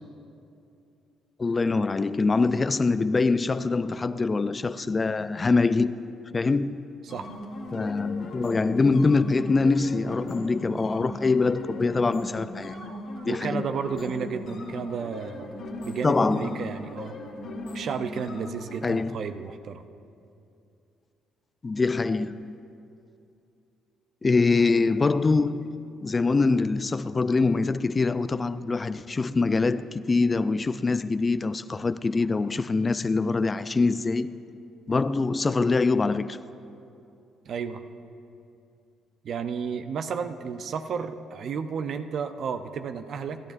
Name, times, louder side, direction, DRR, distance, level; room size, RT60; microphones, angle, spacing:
voice 1, 1.4-6.0 6.3-6.9 7.7-12.8 13.2-13.6 16.0-16.7 18.8-19.2 21.6-22.6 24.2-34.3 34.9-36.4, left 3 dB, 30° left, 0.4 m, -24 dB
sound 1, 7.1-18.8, left 2 dB, 65° left, 1.5 m, -38 dB
voice 2, 12.7-15.5 15.8-17.1 17.7-19.8 37.5-37.8 39.2-43.4, right 6 dB, 60° right, 0.7 m, -32 dB
28.5 x 12.0 x 2.6 m
hypercardioid pair, 55°, 0 cm